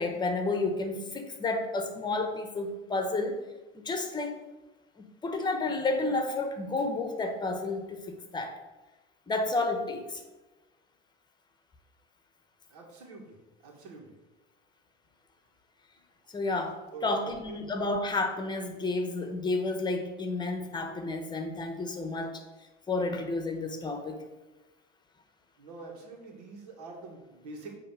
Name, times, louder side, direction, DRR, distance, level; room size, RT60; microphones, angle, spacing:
voice 1, 0.0-3.4 3.7-4.4 5.0-8.6 9.3-10.2 16.3-22.4 22.9-24.3, left 2 dB, 20° left, 6 dB, 1.2 m, -31 dB
voice 2, 12.7-13.4 13.6-14.1 16.9-17.6 25.6-27.8, right 3 dB, 90° right, 1 dB, 2.0 m, -45 dB
9.0 x 3.5 x 6.3 m, 1.1 s
supercardioid pair, 110°, 19 cm